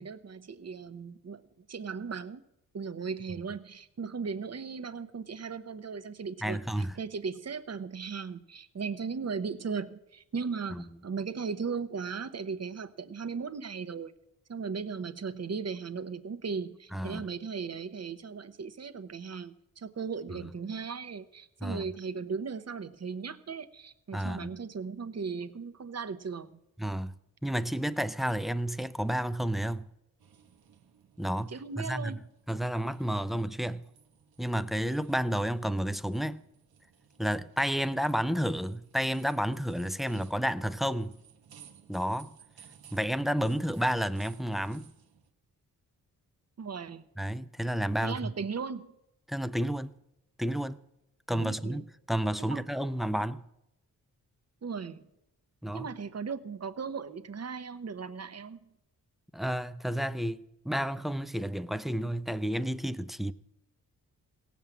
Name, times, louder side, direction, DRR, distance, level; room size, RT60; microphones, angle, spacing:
voice 1, 0.0-2.4 2.7-14.1 14.5-26.5 31.5-32.2 46.6-47.0 48.0-48.9 51.4-51.8 52.4-52.6 54.6-55.1 55.7-58.7, right 5 dB, 45° right, 0.9 m, -37 dB
voice 2, 6.4-6.9 10.7-10.8 16.9-17.3 20.3-20.4 21.6-21.9 24.1-24.5 26.8-27.1 27.4-29.9 31.2-32.2 32.5-33.8 34.4-36.4 37.2-41.1 41.9-42.3 42.9-44.9 47.2-48.3 49.3-50.0 50.4-50.8 51.3-53.4 55.6-55.9 59.3-63.3, equal, ahead, 0.5 m, -31 dB
sound 1, 30.2-45.3, right 7 dB, 75° right, 1.0 m, -58 dB
17.0 x 7.3 x 7.2 m
cardioid pair, 60°, 37 cm